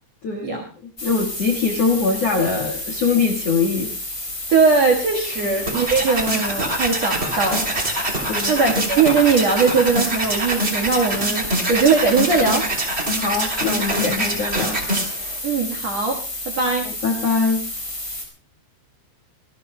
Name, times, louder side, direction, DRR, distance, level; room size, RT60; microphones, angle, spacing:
voice 1, 0.2-0.6 1.0-3.9 5.4-5.5 8.3-8.6 13.1-14.8 16.8-17.6, left 4 dB, 85° left, 2 dB, 1.4 m, -22 dB
sound 1, 1.0-18.2, left 1 dB, 15° left, 4.2 m, -31 dB
voice 2, 4.5-8.1 8.5-12.7 15.4-16.2 16.4-16.9, right 4 dB, 80° right, 2 dB, 1.5 m, -20 dB
sound 2, 5.3-15.4, right 1 dB, 20° right, 2.1 m, -25 dB
25.5 x 19.0 x 2.2 m, 0.38 s
omnidirectional pair, 5.5 m